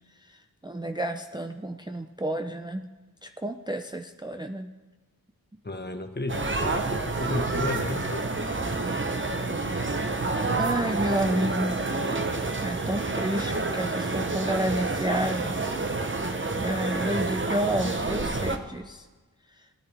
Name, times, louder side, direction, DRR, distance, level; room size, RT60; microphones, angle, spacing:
voice 1, 0.2-2.9 3.2-4.7 5.5-5.6 10.6-11.8 12.6-15.6 16.5-19.1 19.5-19.7, right 1 dB, 10° right, 5 dB, 0.5 m, -30 dB
voice 2, 5.6-8.3 12.1-12.2, left 2 dB, 30° left, 7 dB, 1.2 m, -33 dB
sound 1, 6.3-18.6, right 3 dB, 35° right, 1.0 m, -28 dB
18.5 x 9.9 x 3.5 m, 1.3 s
wide cardioid pair, 55°, 36 cm